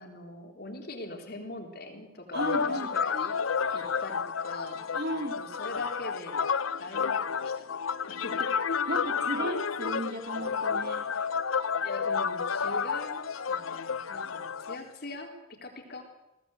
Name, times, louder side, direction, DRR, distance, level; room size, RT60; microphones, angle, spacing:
voice 1, 0.0-3.3 3.7-4.9 5.4-6.5 6.8-7.8 8.1-8.5 10.9-11.0 11.8-15.3 15.6-16.0, left 2 dB, 50° left, 3 dB, 3.6 m, -42 dB
sound 1, 2.3-14.8, left 6 dB, 85° left, 0.7 m, -31 dB
voice 2, 2.3-2.9 3.6-4.0 4.9-5.4 8.9-11.3, right 1 dB, 55° right, 4 dB, 3.7 m, -35 dB
22.0 x 16.5 x 7.9 m, 0.96 s
head